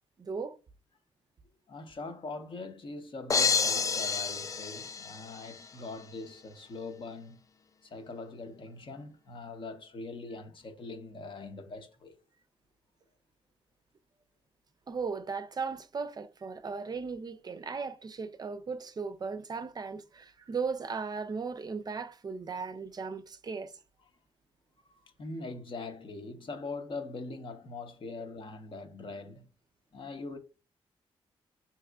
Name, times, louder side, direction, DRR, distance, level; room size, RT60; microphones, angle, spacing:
voice 1, 0.2-0.6 14.9-23.7, right 5 dB, 40° right, 0.5 m, -37 dB
voice 2, 1.7-7.4 7.8-12.2 25.0-29.5 29.9-30.4, left 3 dB, 55° left, 0.8 m, -42 dB
sound 1, 3.3-5.6, left 5 dB, 35° left, 0.3 m, -29 dB
4.7 x 2.9 x 2.3 m
cardioid pair, 75°, 10 cm